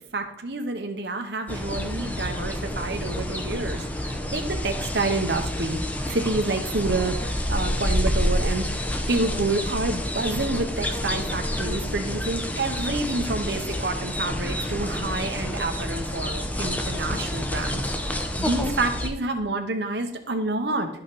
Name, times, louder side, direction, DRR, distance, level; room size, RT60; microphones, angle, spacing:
voice 1, 0.1-5.8 6.1-8.7 9.1-20.9, right 2 dB, 70° right, 5 dB, 1.0 m, -28 dB
sound 1, 1.5-19.1, left 1 dB, 10° left, 0.8 m, -28 dB
12.0 x 5.7 x 4.1 m, 0.76 s
head